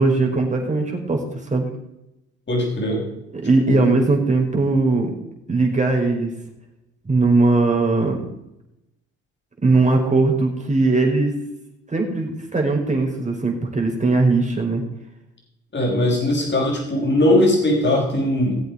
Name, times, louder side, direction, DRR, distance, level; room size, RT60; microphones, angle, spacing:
voice 1, 0.0-1.7 3.4-5.1 5.5-6.3 7.0-8.2 9.6-11.4 11.9-14.8, right 3 dB, 25° right, 1 dB, 5.0 m, -19 dB
voice 2, 2.5-3.0 3.7-3.8 13.2-13.3 15.7-18.5, left 1 dB, 35° left, 0 dB, 6.1 m, -19 dB
19.0 x 8.0 x 5.0 m, 0.86 s
supercardioid pair, 60°, 30 cm